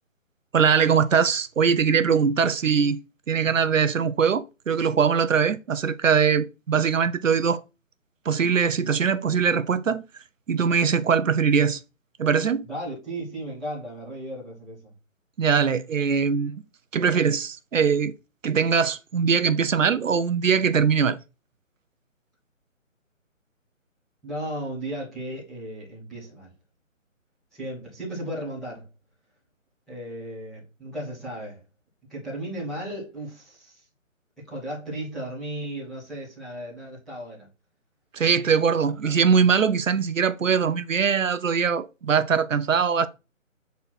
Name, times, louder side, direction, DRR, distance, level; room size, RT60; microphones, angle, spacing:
voice 1, 0.5-3.0 3.3-7.6 8.3-10.0 10.5-11.8 12.2-12.7 15.4-16.6 16.9-18.1 18.4-21.2 38.1-43.1, right 6 dB, 70° right, 0.8 m, -22 dB
voice 2, 12.7-14.9 24.2-26.5 27.5-28.9 29.9-31.6 32.1-33.8 34.4-37.5 38.6-38.9, right 1 dB, ahead, 1.0 m, -35 dB
8.0 x 4.2 x 4.2 m
hypercardioid pair, 170°, 40 cm